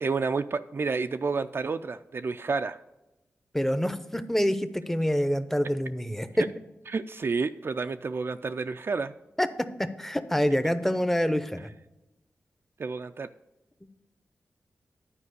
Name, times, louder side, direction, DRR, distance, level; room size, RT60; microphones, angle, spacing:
voice 1, 0.0-2.8 6.9-9.1 12.8-13.3, right 4 dB, 50° right, 8 dB, 0.4 m, -30 dB
voice 2, 3.5-6.3 9.4-11.7, equal, 5° left, 11 dB, 0.7 m, -27 dB
10.0 x 4.6 x 6.5 m, 0.95 s
cardioid pair, 55°, 5 cm